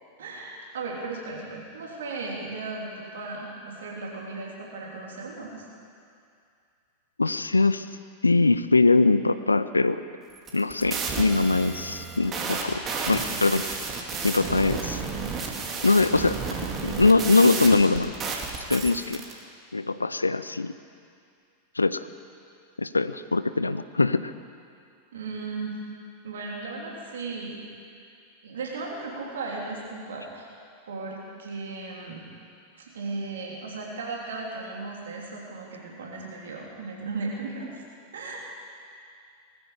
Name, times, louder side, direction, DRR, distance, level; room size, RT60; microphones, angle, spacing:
voice 1, 0.2-5.6 25.1-25.8 26.2-27.6 28.4-30.5 30.9-32.2 32.7-37.7 38.1-38.5, right 3 dB, 65° right, -2 dB, 3.3 m, -36 dB
voice 2, 7.2-7.8 8.2-10.0 10.5-13.6 14.2-15.0 15.8-16.4 16.8-18.1 18.7-19.2 19.7-20.7 21.8-22.0 22.8-24.3, left 3 dB, 80° left, 13 dB, 0.5 m, -22 dB
sound 1, 10.4-19.3, right 4 dB, 25° right, 2.1 m, -32 dB
20.0 x 14.0 x 5.0 m, 2.4 s
figure-of-eight pair, 90°, 0 cm